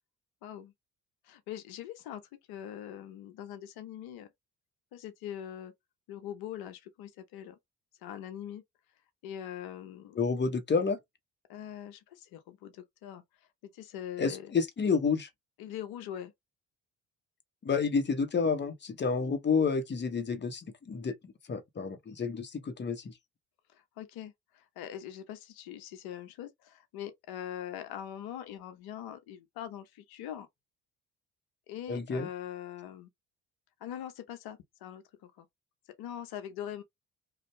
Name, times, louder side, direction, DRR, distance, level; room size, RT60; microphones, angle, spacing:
voice 1, 0.4-0.7 1.3-2.2 2.5-4.3 4.9-5.7 6.1-7.6 8.0-8.6 9.2-10.2 11.5-13.2 13.7-14.5 15.6-16.3 24.0-30.5 31.7-33.1 33.8-35.4 36.0-36.8, left 10 dB, 70° left, 0.8 m, -42 dB
voice 2, 10.2-11.0 14.2-15.3 17.6-23.1 31.9-32.3, left 5 dB, 30° left, 0.9 m, -30 dB
2.6 x 2.2 x 3.2 m
hypercardioid pair, 55°, 38 cm